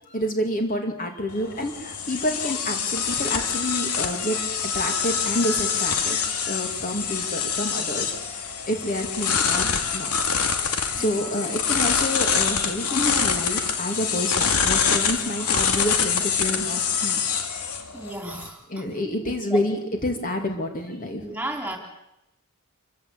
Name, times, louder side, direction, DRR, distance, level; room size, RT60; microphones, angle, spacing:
voice 1, 0.1-6.2 6.5-8.4 8.7-10.1 10.9-17.2 18.7-21.2, left 1 dB, 35° left, 4 dB, 2.7 m, -28 dB
sound 1, 1.3-18.5, left 6 dB, 85° left, 2.6 m, -25 dB
voice 2, 10.9-11.3 17.9-18.8 19.5-19.6 21.2-21.8, right 1 dB, 5° right, 3 dB, 3.5 m, -34 dB
26.0 x 16.0 x 8.8 m, 0.89 s
head